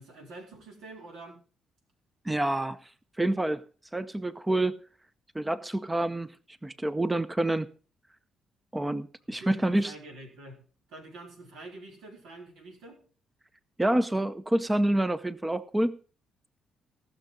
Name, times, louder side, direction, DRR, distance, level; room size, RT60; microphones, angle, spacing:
voice 1, 0.0-1.4 9.3-10.6 10.9-13.0, right 2 dB, 85° right, 4.4 m, -46 dB
voice 2, 2.3-2.8 3.2-3.6 3.9-4.8 5.3-6.3 6.6-7.7 8.7-9.9 13.8-16.0, right 1 dB, 10° right, 0.6 m, -27 dB
17.0 x 6.5 x 5.4 m
cardioid pair, 90°, 0 cm